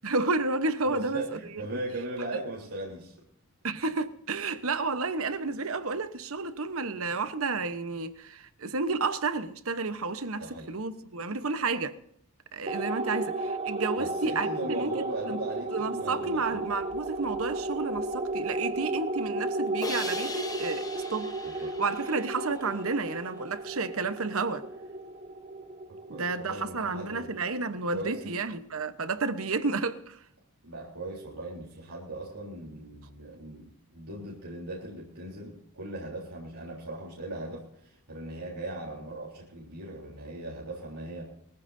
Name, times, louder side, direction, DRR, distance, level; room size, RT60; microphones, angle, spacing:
voice 1, 0.0-1.2 3.6-11.9 12.5-15.4 15.7-21.3 21.8-24.7 26.1-30.2, right 3 dB, 70° right, 1.0 m, -31 dB
voice 2, 0.9-3.1 10.4-10.7 14.0-16.7 21.4-21.7 26.1-27.3 27.9-28.4 30.6-41.2, right 2 dB, 85° right, 3.6 m, -38 dB
sound 1, 12.7-27.4, right 2 dB, 25° right, 0.6 m, -34 dB
Crash cymbal, 19.8-22.9, left 3 dB, 15° left, 0.9 m, -40 dB
22.0 x 15.0 x 2.7 m
head